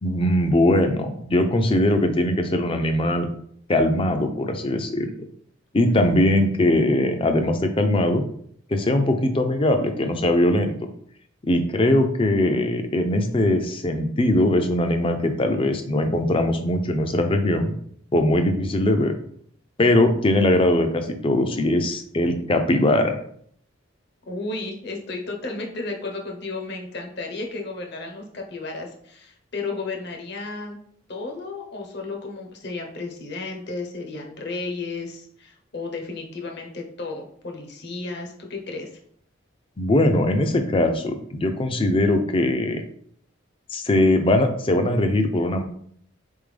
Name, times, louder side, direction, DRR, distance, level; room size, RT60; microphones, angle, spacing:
voice 1, 0.0-3.3 3.7-5.1 5.7-8.2 8.7-10.8 11.4-17.7 18.1-19.1 19.8-23.2 39.8-42.8 43.7-45.6, left 1 dB, 25° left, 7 dB, 0.5 m, -21 dB
voice 2, 24.3-30.8 31.1-38.9, left 3 dB, 55° left, 2 dB, 0.9 m, -33 dB
4.3 x 3.6 x 3.3 m, 0.63 s
head